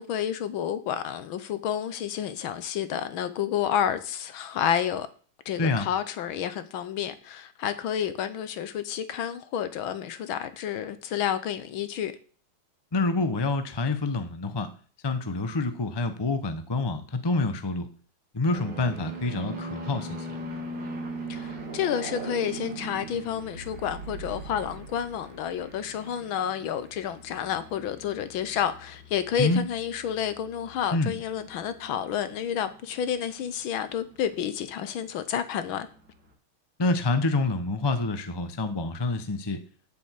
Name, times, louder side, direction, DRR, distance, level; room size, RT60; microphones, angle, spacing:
voice 1, 0.0-5.1 5.4-12.1 21.3-35.9, left 9 dB, 75° left, 1.7 m, -30 dB
voice 2, 12.9-14.7 15.0-17.9 18.3-20.3 29.4-29.6 30.9-31.1 36.8-39.6, left 3 dB, 20° left, 0.6 m, -27 dB
sound 1, 18.5-35.5 35.8-36.3, right 2 dB, 55° right, 2.7 m, -41 dB
sound 2, 20.4-25.9, right 5 dB, 85° right, 2.5 m, -43 dB
8.0 x 6.9 x 8.4 m
omnidirectional pair, 2.3 m